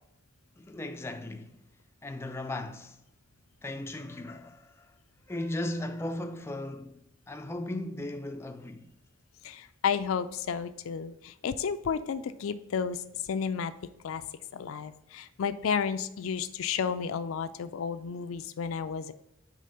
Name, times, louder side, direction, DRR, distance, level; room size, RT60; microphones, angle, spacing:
voice 1, 0.6-1.6 2.0-3.0 3.6-4.9 5.3-7.0 7.3-8.9, left 1 dB, 10° left, 0.3 m, -37 dB
voice 2, 9.4-13.7 14.0-14.2 14.5-19.1, left 6 dB, 85° left, 0.4 m, -32 dB
5.0 x 3.4 x 5.5 m
head